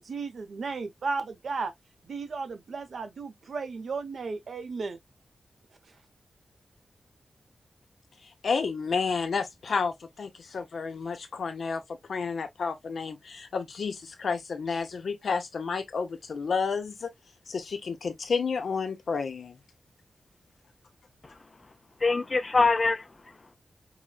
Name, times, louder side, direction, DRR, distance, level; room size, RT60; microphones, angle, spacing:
voice 1, 0.0-1.7 2.0-5.0, right 4 dB, 65° right, 0.7 m, -34 dB
voice 2, 8.4-11.8 12.1-17.1 17.5-19.6, left 5 dB, 65° left, 0.7 m, -31 dB
voice 3, 21.2-21.7 22.0-23.6, left 3 dB, 30° left, 0.4 m, -26 dB
4.8 x 2.1 x 2.2 m
wide cardioid pair, 175°, 0 cm